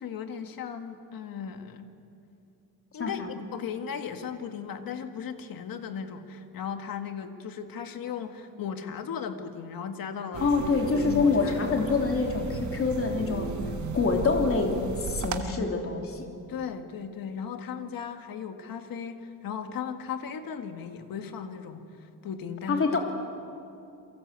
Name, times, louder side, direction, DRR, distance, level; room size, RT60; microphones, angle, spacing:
voice 1, 0.0-1.9 2.9-3.2 3.5-10.5 11.0-12.0 16.5-22.8, left 7 dB, 70° left, 6 dB, 2.0 m, -36 dB
sound 1, 10.3-15.4, right 4 dB, 50° right, 1.7 m, -35 dB
voice 2, 10.4-13.6 13.9-16.3 22.7-23.0, left 4 dB, 40° left, 2 dB, 3.2 m, -26 dB
29.0 x 23.5 x 8.3 m, 2.6 s
wide cardioid pair, 175°, 36 cm